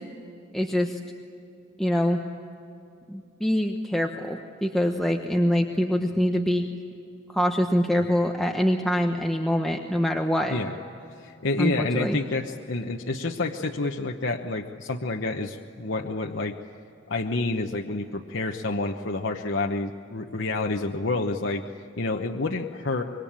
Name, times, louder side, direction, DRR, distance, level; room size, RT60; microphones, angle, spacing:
voice 1, 0.5-1.0 1.8-2.2 3.1-6.7 7.3-10.6 11.6-12.2, equal, ahead, 1 dB, 1.1 m, -24 dB
voice 2, 11.1-16.6 17.1-21.6 22.0-23.0, left 2 dB, 65° left, 2 dB, 1.0 m, -28 dB
26.0 x 23.0 x 8.8 m, 2.8 s
head